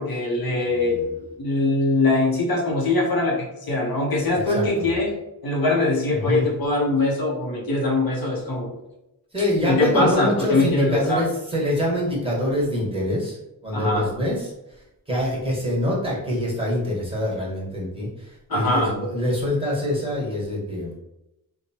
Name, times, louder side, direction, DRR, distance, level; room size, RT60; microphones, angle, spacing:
voice 1, 0.0-5.2 5.4-8.7 9.7-11.2 13.7-14.1 18.5-18.9, left 2 dB, 65° left, -2 dB, 0.8 m, -22 dB
voice 2, 4.3-4.9 6.1-6.5 9.3-13.4 13.6-14.5 15.1-20.9, left 1 dB, 15° right, -5 dB, 1.4 m, -25 dB
2.9 x 2.1 x 2.8 m, 0.89 s
cardioid pair, 55°, 39 cm